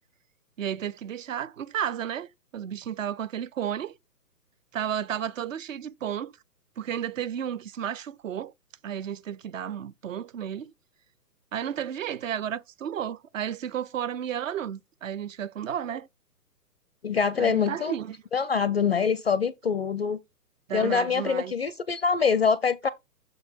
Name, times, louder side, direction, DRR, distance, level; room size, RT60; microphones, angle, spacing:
voice 1, 0.6-3.9 4.7-6.3 6.8-8.5 8.8-10.7 11.5-16.1 17.4-18.2 20.7-21.5, right 9 dB, 55° right, 0.6 m, -32 dB
voice 2, 17.0-17.9 18.3-20.2 20.7-22.9, left 6 dB, 40° left, 0.4 m, -24 dB
6.9 x 4.7 x 4.4 m
hypercardioid pair, 140°, 49 cm